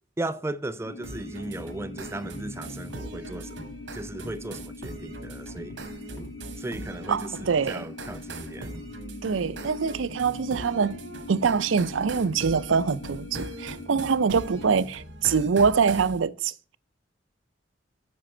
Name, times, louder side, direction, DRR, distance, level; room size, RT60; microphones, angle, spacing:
voice 1, 0.2-3.6 3.9-5.8 6.6-8.7, right 2 dB, 15° right, 0.4 m, -36 dB
sound 1, 0.8-14.8, left 3 dB, 65° left, 1.4 m, -43 dB
sound 2, 1.0-1.1 1.6-1.8 2.2-2.5 2.9-3.1 3.6-3.8 4.2-4.5 4.9-5.1 5.6-5.8 6.2-6.4 6.8-7.7 8.1-8.4 8.7-9.0 9.4-9.7 10.1-10.3 10.8-11.0 11.4-11.7 12.1-12.3 12.7-12.9 13.3-13.5 13.9-14.2 14.6-14.8, right 1 dB, 15° left, 3.6 m, -47 dB
sound 3, 1.0-16.2, right 2 dB, 75° right, 1.5 m, -41 dB
voice 2, 7.1-7.8 9.2-11.0 11.3-16.5, right 5 dB, 90° right, 0.5 m, -24 dB
7.5 x 7.4 x 4.3 m
head